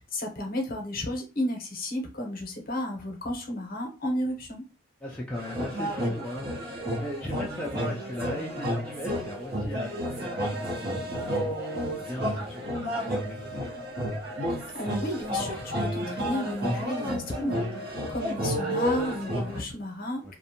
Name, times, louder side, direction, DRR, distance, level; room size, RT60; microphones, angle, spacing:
voice 1, 0.0-4.6 14.5-20.4, left 1 dB, 45° left, 0.7 m, -33 dB
voice 2, 5.0-13.8 20.2-20.4, equal, 5° left, 0.3 m, -39 dB
sound 1, 5.3-19.6, equal, 50° right, 0.7 m, -31 dB
2.6 x 2.1 x 2.8 m
head